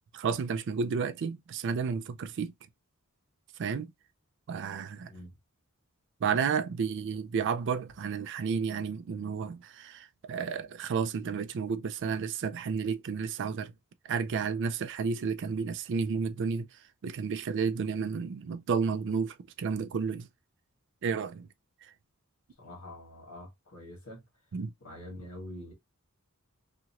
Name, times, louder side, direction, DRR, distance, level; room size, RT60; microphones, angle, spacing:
voice 1, 0.1-2.5 3.6-3.9 4.5-5.1 6.2-13.7 14.1-16.7 17.0-20.3 21.0-21.5 24.5-24.7, right 5 dB, 55° right, 0.4 m, -31 dB
voice 2, 22.6-24.2 24.8-25.7, left 1 dB, 80° left, 1.5 m, -45 dB
2.9 x 2.4 x 2.8 m
head